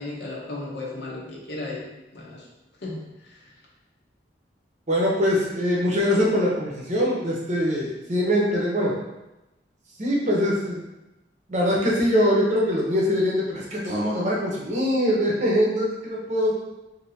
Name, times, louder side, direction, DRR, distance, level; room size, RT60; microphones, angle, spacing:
voice 1, 0.0-1.9 2.1-2.4 2.8-3.0, left 2 dB, 65° left, -2 dB, 0.7 m, -34 dB
voice 2, 4.9-8.9 10.0-10.8 11.5-16.5, equal, 40° right, -4 dB, 0.7 m, -23 dB
3.2 x 2.6 x 2.7 m, 0.97 s
head